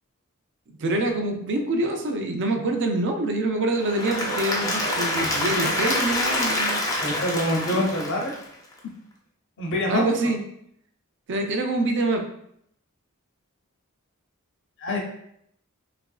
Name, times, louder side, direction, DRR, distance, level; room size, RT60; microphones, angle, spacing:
voice 1, 0.8-6.8 7.7-7.9 9.9-10.4 11.3-12.2, right 2 dB, 55° right, 4 dB, 0.4 m, -25 dB
Applause / Crowd, 3.7-8.7, left 1 dB, 15° left, 0.4 m, -26 dB
voice 2, 7.0-8.3 9.6-10.0 14.8-15.0, left 1 dB, 60° left, 0 dB, 0.6 m, -25 dB
2.9 x 2.4 x 2.3 m, 0.71 s
head